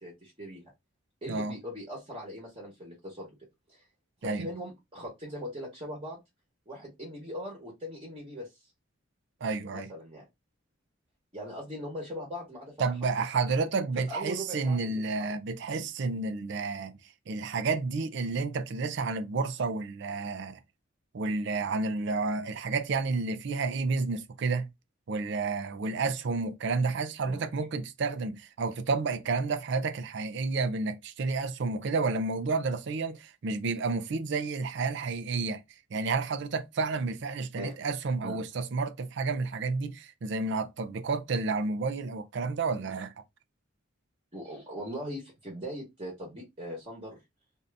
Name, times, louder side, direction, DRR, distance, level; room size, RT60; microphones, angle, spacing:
voice 1, 0.0-0.6 1.2-3.3 3.7-3.8 4.2-6.2 6.7-8.5 9.7-10.3 11.3-12.7 14.1-15.0 27.2-27.5 37.6-37.8 38.2-38.4 44.3-47.2, equal, 30° right, 1.1 m, -40 dB
voice 2, 9.4-9.9 12.8-17.0 17.3-20.6 21.1-24.7 25.1-35.6 35.9-43.1, right 4 dB, 60° right, 0.4 m, -30 dB
2.7 x 2.5 x 3.3 m
head